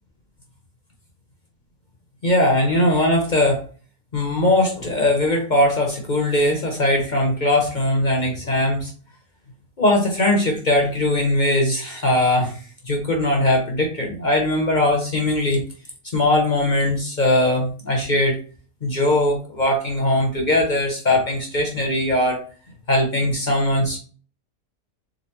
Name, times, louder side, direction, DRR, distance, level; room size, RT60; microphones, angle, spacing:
voice 1, 2.2-3.6 4.1-8.9 9.8-15.6 16.1-18.4 18.8-22.4 22.9-24.0, left 1 dB, 45° left, 2 dB, 0.6 m, -20 dB
4.0 x 3.7 x 2.9 m, 0.40 s
omnidirectional pair, 1.8 m